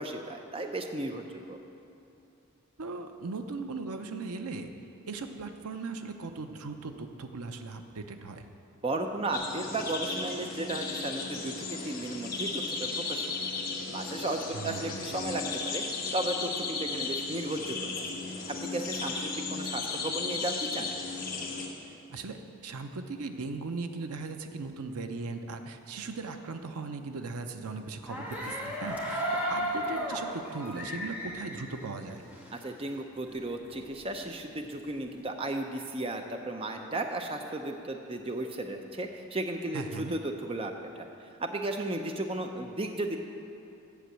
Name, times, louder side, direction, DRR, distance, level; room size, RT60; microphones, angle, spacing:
voice 1, 0.0-1.6 8.8-13.3 13.9-15.8 16.1-18.1 18.5-20.9 32.6-41.1 41.4-43.2, right 2 dB, 25° right, 4 dB, 0.5 m, -35 dB
voice 2, 2.8-4.7 5.1-8.4 14.5-15.1 21.8-22.4 22.6-32.2 39.7-40.1, right 3 dB, 85° right, 7 dB, 0.7 m, -38 dB
sound 1, 9.3-21.7, left 4 dB, 40° left, 1.1 m, -35 dB
sound 2, 28.1-32.7 33.0-33.1 33.3-35.1, equal, 5° right, 1.2 m, -35 dB
8.2 x 6.9 x 7.6 m, 2.7 s
head